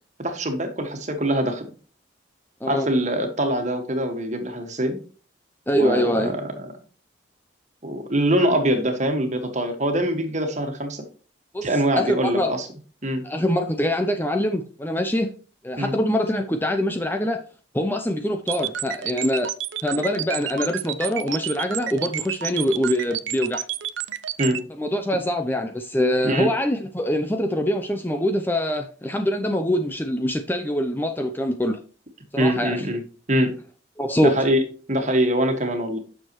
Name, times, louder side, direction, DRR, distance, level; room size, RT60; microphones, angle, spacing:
voice 1, 0.2-1.7 2.7-5.0 5.7-6.6 7.8-11.0 11.6-12.7 13.0-13.2 15.8-15.9 24.4-24.6 26.2-26.5 32.4-33.0 33.3-33.5 34.2-34.6 34.9-36.0, right 1 dB, 35° right, 1.6 m, -23 dB
voice 2, 5.7-6.3 11.5-11.7 12.0-12.5 13.2-15.3 15.6-17.4 17.7-19.5 19.8-23.6 24.8-31.8 32.3-32.8 34.0-34.4, equal, 10° left, 0.6 m, -24 dB
sound 1, 18.5-24.6, right 11 dB, 75° right, 0.7 m, -29 dB
9.1 x 6.7 x 3.0 m
head